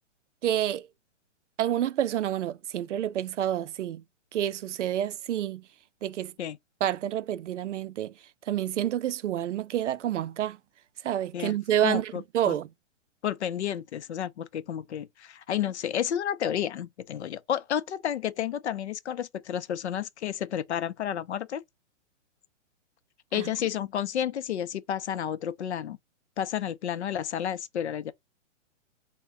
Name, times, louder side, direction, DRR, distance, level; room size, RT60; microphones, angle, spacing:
voice 1, 0.4-0.9 1.6-4.0 4.3-5.7 6.0-6.3 6.8-8.1 8.5-10.6 11.0-12.7 23.3-23.5, right 11 dB, 70° right, 0.5 m, -28 dB
voice 2, 11.8-12.2 12.5-12.6 13.2-21.6 23.3-26.0 26.4-28.1, left 10 dB, 65° left, 0.5 m, -31 dB
3.6 x 2.1 x 3.3 m
hypercardioid pair, 175°, 37 cm